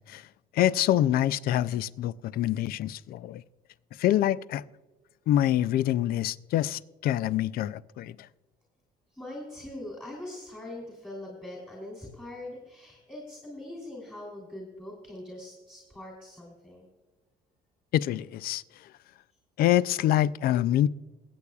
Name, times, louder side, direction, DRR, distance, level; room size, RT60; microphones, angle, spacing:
voice 1, 0.5-3.4 4.0-4.6 5.3-8.2 17.9-18.6 19.6-20.9, left 12 dB, 60° left, 0.4 m, -25 dB
voice 2, 9.1-16.9, left 1 dB, 10° left, 2.9 m, -42 dB
21.5 x 8.4 x 2.3 m
cardioid pair, 110°, 17 cm